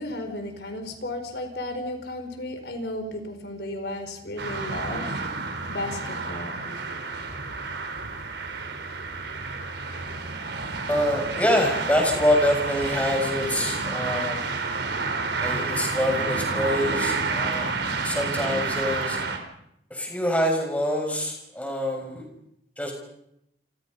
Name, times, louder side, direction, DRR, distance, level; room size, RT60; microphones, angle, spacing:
voice 1, 0.0-5.2 5.7-6.7, left 1 dB, 60° left, 6 dB, 4.8 m, -34 dB
sound 1, 4.4-19.4, right 3 dB, 65° right, 4.5 m, -30 dB
voice 2, 10.9-14.4 15.4-17.7 18.0-19.2 19.9-22.2 22.8-22.9, left 1 dB, 10° left, 2 dB, 6.9 m, -25 dB
29.5 x 25.5 x 5.6 m, 0.78 s
head